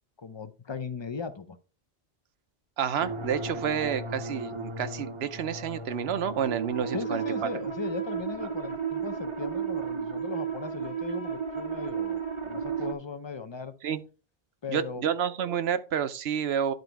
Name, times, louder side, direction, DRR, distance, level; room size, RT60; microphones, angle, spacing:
voice 1, 0.2-1.6 6.9-13.7 14.6-15.0, left 5 dB, 30° left, 0.6 m, -37 dB
voice 2, 2.8-7.5 8.4-8.5 13.8-14.0 14.7-16.7, right 8 dB, 75° right, 0.9 m, -29 dB
sound 1, 3.0-12.9, right 5 dB, 30° right, 0.7 m, -34 dB
10.5 x 4.0 x 4.6 m
omnidirectional pair, 1.1 m